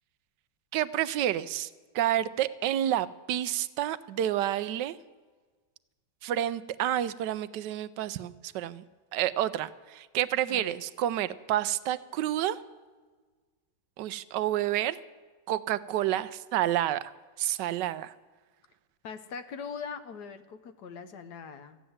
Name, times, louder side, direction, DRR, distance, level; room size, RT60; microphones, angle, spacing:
voice 1, 0.7-1.7 1.9-5.0 6.2-8.8 9.1-12.6 14.0-15.0 15.5-17.1 17.4-18.1, right 12 dB, 80° right, 15 dB, 1.2 m, -29 dB
voice 2, 19.0-21.8, left 6 dB, 65° left, 11 dB, 1.4 m, -41 dB
14.0 x 9.2 x 7.8 m, 1.4 s
omnidirectional pair, 1.9 m